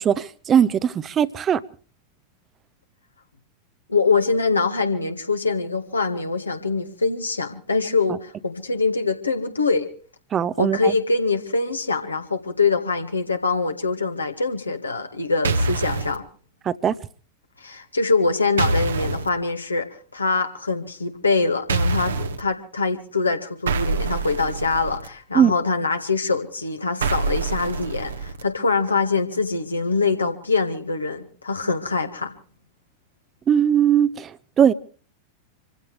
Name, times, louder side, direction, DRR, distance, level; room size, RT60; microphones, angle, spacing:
voice 1, 0.0-1.6 10.3-10.9 16.6-16.9 25.3-25.5 33.5-34.7, right 8 dB, 25° right, 0.7 m, -19 dB
voice 2, 3.9-9.9 10.6-16.2 17.6-19.9 20.1-32.3, left 4 dB, 80° left, 1.8 m, -24 dB
sound 1, 15.4-16.2 18.6-19.3 21.7-22.4 23.7-25.1 27.0-28.4, right 3 dB, 65° right, 1.2 m, -25 dB
26.5 x 15.5 x 3.3 m
figure-of-eight pair, 90°, 0 cm